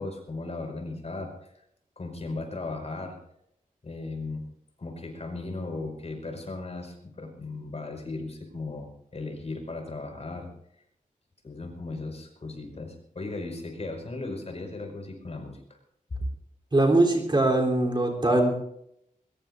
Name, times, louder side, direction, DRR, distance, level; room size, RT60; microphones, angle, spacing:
voice 1, 0.0-1.6 2.0-3.2 3.8-4.5 4.8-10.5 11.4-15.8 16.1-16.2, left 3 dB, 45° left, 3 dB, 5.3 m, -37 dB
voice 2, 16.7-18.6, right 2 dB, 30° right, 0 dB, 3.5 m, -22 dB
22.0 x 21.5 x 2.6 m, 0.74 s
wide cardioid pair, 120°, 15 cm